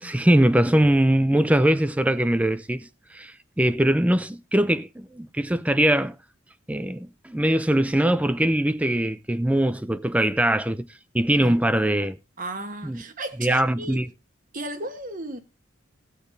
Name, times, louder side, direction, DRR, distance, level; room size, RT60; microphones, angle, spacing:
voice 1, 0.0-6.1 6.7-10.9 11.1-12.2 12.8-13.0 13.4-14.1, right 1 dB, 5° right, 0.4 m, -22 dB
voice 2, 12.4-14.0 14.5-15.4, right 1 dB, 40° right, 1.3 m, -34 dB
18.5 x 6.8 x 2.6 m
head